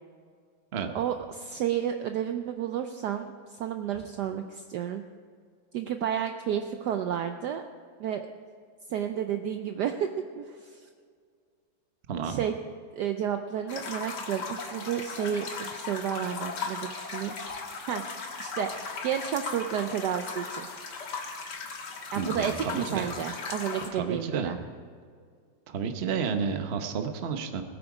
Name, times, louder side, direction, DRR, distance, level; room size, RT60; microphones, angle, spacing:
voice 1, 0.9-5.0 5.7-7.6 8.0-8.2 8.9-10.1 10.4-10.8 12.2-12.5 12.9-17.3 17.8-18.0 18.4-20.7 22.1-24.6, right 9 dB, 70° right, 7 dB, 1.0 m, -31 dB
voice 2, 12.1-12.5 22.2-23.1 23.9-24.5 25.7-27.6, right 6 dB, 45° right, 6 dB, 0.9 m, -31 dB
sound 1, 13.7-23.9, left 4 dB, 60° left, 2.0 m, -37 dB
19.5 x 8.8 x 4.9 m, 2.1 s
omnidirectional pair, 2.2 m